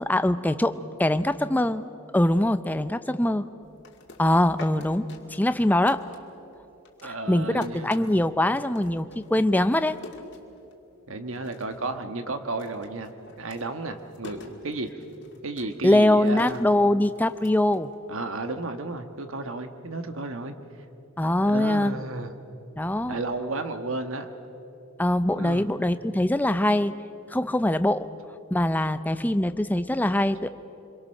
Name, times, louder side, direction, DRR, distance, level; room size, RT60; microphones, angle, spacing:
voice 1, 0.0-1.9 2.1-3.5 4.2-6.0 7.0-10.0 15.8-17.9 21.2-22.0 22.8-23.2 25.0-26.9 27.3-28.1 28.5-30.5, left 1 dB, 10° left, 11 dB, 0.5 m, -23 dB
sound 1, 3.6-6.6 6.8-11.0 11.3-11.9 12.2-18.4, left 2 dB, 50° left, 2.3 m, -47 dB
voice 2, 7.0-8.1 11.1-14.9 15.4-16.6 18.1-20.5 21.4-22.3 23.1-24.3 25.3-25.7, right 2 dB, 65° right, 7 dB, 1.4 m, -33 dB
26.0 x 23.0 x 6.5 m, 2.9 s
head